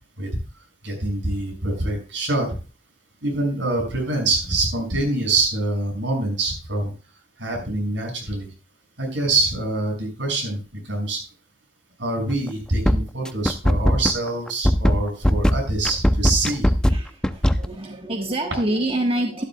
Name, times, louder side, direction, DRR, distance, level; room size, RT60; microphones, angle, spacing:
voice 1, 0.8-2.6 3.2-6.9 7.4-8.5 9.0-11.2 12.0-16.7, right 2 dB, 80° right, 1 dB, 6.3 m, -25 dB
sound 1, 12.3-12.5 12.8-17.7, equal, 5° left, 0.6 m, -18 dB
voice 2, 16.9-19.4, right 1 dB, 30° right, 3 dB, 1.3 m, -26 dB
13.5 x 12.0 x 2.3 m, 0.34 s
head